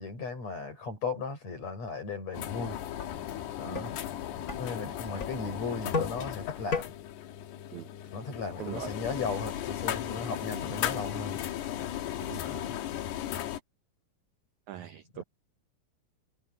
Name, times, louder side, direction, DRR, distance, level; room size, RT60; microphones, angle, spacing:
voice 1, 0.0-2.8 3.6-4.0 4.5-6.9 8.0-11.4 12.4-12.8 15.1-15.2, left 4 dB, 40° left, 7.5 m, -36 dB
sound 1, 2.3-13.6, left 11 dB, 85° left, 3.6 m, -36 dB
sound 2, 2.4-2.5 3.0-3.1 3.7-3.9 4.5-4.6 5.2-5.4 5.9-6.2 6.7-6.9, left 4 dB, 25° left, 3.4 m, -31 dB
voice 2, 8.6-8.9 10.2-10.4 12.2-12.4 14.7-15.2, right 12 dB, 75° right, 1.8 m, -41 dB
omnidirectional pair, 4.6 m